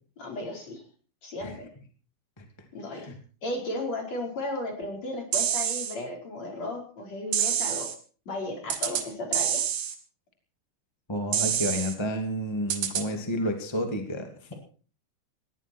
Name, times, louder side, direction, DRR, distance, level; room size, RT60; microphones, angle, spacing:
voice 1, 0.2-0.8 1.2-1.7 2.7-3.1 3.4-7.9 8.3-9.8, left 2 dB, 35° left, 2 dB, 5.5 m, -35 dB
sound 1, 5.3-5.9 7.3-7.9 8.7-9.0 9.3-9.9 11.3-11.9 12.7-13.0, right 9 dB, 55° right, 2.9 m, -27 dB
voice 2, 11.1-14.5, equal, 15° left, 5 dB, 0.9 m, -31 dB
20.5 x 15.0 x 4.6 m, 0.41 s
omnidirectional pair, 5.6 m